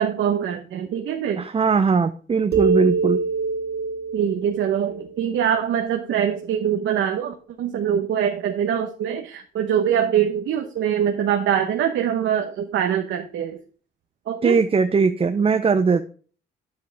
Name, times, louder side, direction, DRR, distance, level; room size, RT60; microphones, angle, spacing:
voice 1, 0.0-1.5 4.1-13.6 14.3-14.6, right 9 dB, 75° right, 4 dB, 1.0 m, -23 dB
voice 2, 1.4-3.2 14.4-16.0, right 5 dB, 30° right, 9 dB, 0.6 m, -20 dB
sound 1, 2.5-6.0, right 4 dB, 55° right, 2.1 m, -25 dB
9.4 x 7.8 x 3.4 m, 0.41 s
cardioid pair, 90°, 20 cm